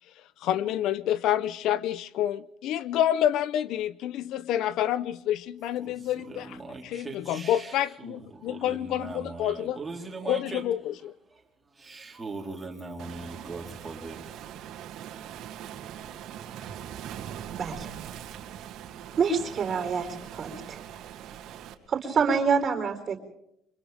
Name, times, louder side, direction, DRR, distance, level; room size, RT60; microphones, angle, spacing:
voice 1, 0.4-6.6 6.8-9.8 10.3-11.1, left 11 dB, 55° left, 0.7 m, -28 dB
voice 2, 5.8-10.6 11.3-14.6, right 3 dB, 10° right, 3.9 m, -40 dB
Waves surf, 13.0-21.7, right 10 dB, 55° right, 2.6 m, -41 dB
voice 3, 17.6-17.9 19.2-20.1 20.3-20.8 21.9-23.2, right 5 dB, 30° right, 4.2 m, -26 dB
29.5 x 25.0 x 3.5 m
cardioid pair, 180°, 0 cm